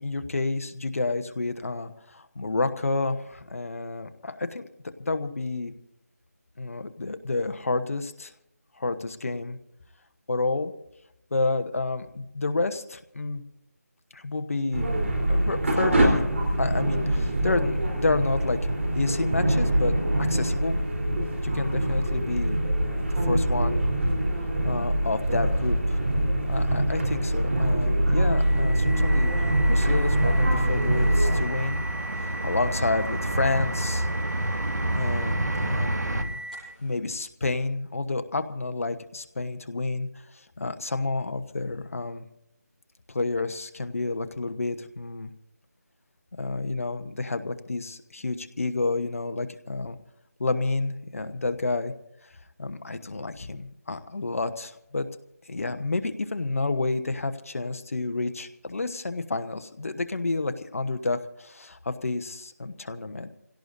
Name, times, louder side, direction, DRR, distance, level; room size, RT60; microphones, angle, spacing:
voice 1, 0.0-4.7 5.0-5.7 6.6-8.3 8.8-9.6 10.3-10.7 11.3-13.4 14.1-14.9 15.3-16.3 16.6-18.6 18.9-19.9 20.3-20.8 21.4-23.8 24.6-26.0 26.5-31.8 32.3-34.1 34.9-36.4 36.8-40.1 40.3-42.3 43.1-45.3 46.4-50.0 50.4-51.9 52.6-55.1 55.5-63.3, left 3 dB, 55° left, 8 dB, 1.1 m, -30 dB
sound 1, 14.7-31.4, right 1 dB, 50° right, 3.7 m, -24 dB
sound 2, 28.3-36.8, right 1 dB, 5° right, 5.5 m, -38 dB
sound 3, 28.9-36.2, right 1 dB, 80° right, 1.6 m, -29 dB
27.5 x 17.0 x 2.7 m, 0.83 s
figure-of-eight pair, 165°, 9 cm